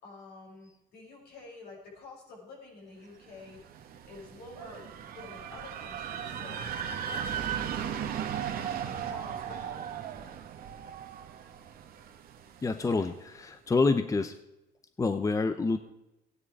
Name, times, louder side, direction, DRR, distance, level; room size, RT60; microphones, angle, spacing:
voice 1, 0.0-6.7 7.1-8.1 8.4-9.9, left 3 dB, 70° left, -2 dB, 6.2 m, -49 dB
sound 1, 3.3-13.1, right 8 dB, 60° right, 1.4 m, -37 dB
voice 2, 12.6-14.3 15.0-15.8, left 3 dB, 20° left, 10 dB, 0.7 m, -27 dB
16.5 x 9.7 x 4.7 m, 0.95 s
cardioid pair, 110°, 17 cm